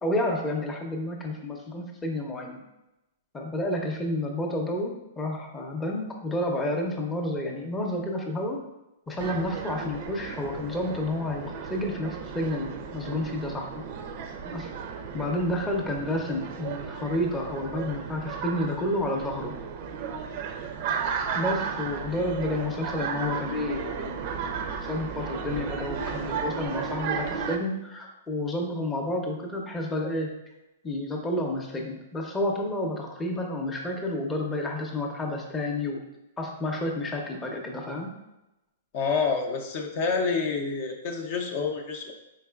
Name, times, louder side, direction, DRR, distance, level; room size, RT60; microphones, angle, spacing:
voice 1, 0.0-2.6 3.3-8.6 9.1-13.7 14.5-14.7 15.1-19.5 21.3-24.1 24.8-30.3 30.8-36.0 36.4-38.1, left 1 dB, 15° left, 0 dB, 0.6 m, -30 dB
sound 1, 9.2-27.6, right 6 dB, 50° right, 0.4 m, -34 dB
voice 2, 38.9-42.1, left 5 dB, 50° left, 2 dB, 0.6 m, -28 dB
4.7 x 3.7 x 2.3 m, 0.95 s
hypercardioid pair, 130°, 0 cm